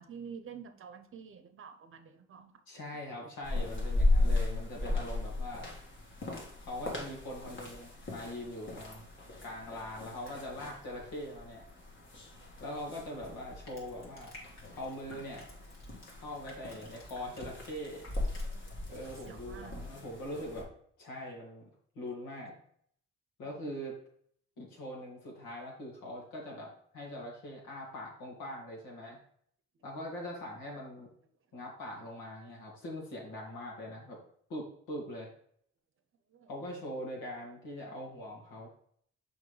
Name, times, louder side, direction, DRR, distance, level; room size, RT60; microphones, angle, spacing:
voice 1, 0.0-2.6 18.4-18.8 19.3-19.8 36.3-36.5, right 6 dB, 45° right, 8 dB, 0.8 m, -48 dB
voice 2, 2.7-5.7 6.6-9.1 9.4-11.6 12.6-14.4 14.8-15.5 16.1-18.0 18.9-20.7 21.0-21.7 21.9-22.6 23.4-24.0 24.6-29.2 29.8-31.1 31.5-34.2 34.5-35.3 36.5-38.7, left 1 dB, 85° left, -2 dB, 2.4 m, -42 dB
sound 1, 3.4-20.6, left 2 dB, 40° left, 1.6 m, -36 dB
Crushing, 13.5-18.8 19.0-19.3, left 2 dB, 60° left, 2.1 m, -54 dB
6.3 x 5.1 x 3.3 m, 0.64 s
cardioid pair, 90°, 30 cm